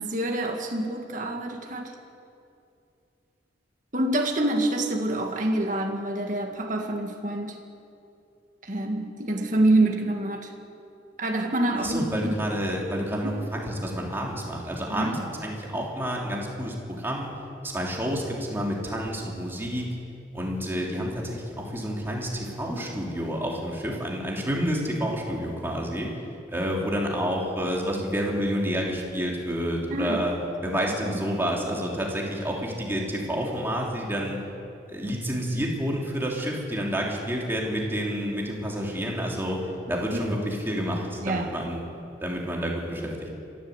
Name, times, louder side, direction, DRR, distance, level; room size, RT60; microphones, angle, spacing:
voice 1, 0.0-1.9 3.9-7.6 8.6-10.5 11.2-12.5 13.2-13.4 14.9-15.2 29.9-30.2 31.0-31.2 40.1-40.2 41.2-41.5, right 1 dB, 45° right, 2 dB, 1.9 m, -26 dB
voice 2, 11.8-17.3 17.6-19.9 20.3-26.1 26.5-30.3 30.6-34.4 34.9-39.6 39.9-41.8 42.2-43.3, equal, 10° right, -2 dB, 3.1 m, -29 dB
27.0 x 12.0 x 8.1 m, 2.6 s
head